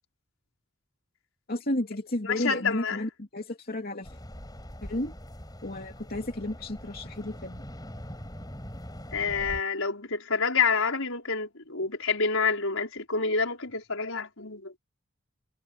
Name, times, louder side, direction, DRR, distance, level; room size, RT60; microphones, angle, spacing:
voice 1, 1.5-4.1 4.8-5.1 5.6-7.6, left 1 dB, 45° left, 2.7 m, -32 dB
voice 2, 2.2-3.0 9.1-14.8, left 5 dB, 75° left, 5.3 m, -28 dB
sound 1, 4.0-9.6, equal, 20° left, 5.6 m, -42 dB
head